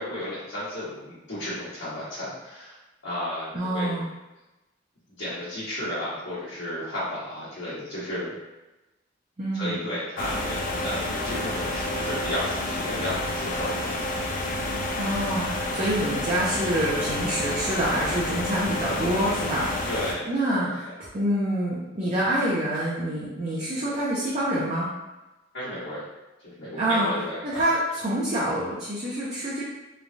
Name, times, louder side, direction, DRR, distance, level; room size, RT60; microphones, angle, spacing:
voice 1, 0.0-2.8 3.0-4.0 5.2-8.4 9.5-14.1 19.9-20.7 25.5-26.0 26.4-27.6, left 1 dB, 75° left, -14 dB, 1.2 m, -33 dB
voice 2, 3.5-4.1 9.4-9.8 14.9-19.7 20.3-20.9 21.1-24.9 26.8-27.1 27.4-29.6, right 1 dB, 35° right, -7 dB, 0.5 m, -26 dB
sound 1, 10.2-20.1, left 1 dB, 45° left, 0.4 m, -29 dB
3.1 x 2.2 x 2.6 m, 1.0 s
head